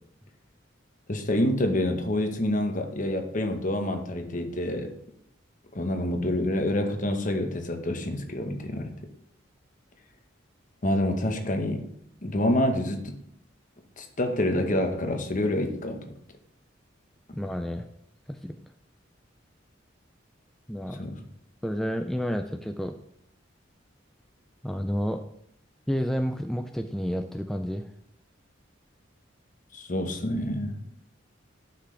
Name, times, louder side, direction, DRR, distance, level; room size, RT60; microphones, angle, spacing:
voice 1, 1.1-4.9 5.7-9.0 10.8-11.9 12.2-13.2 14.0-16.0 21.0-21.2 29.7-30.7, left 1 dB, 45° left, 5 dB, 1.1 m, -27 dB
voice 2, 17.3-17.9 18.3-18.6 20.7-21.1 21.6-22.9 24.6-25.2 25.9-27.9, equal, ahead, 5 dB, 0.3 m, -30 dB
11.5 x 5.9 x 3.3 m, 0.71 s
head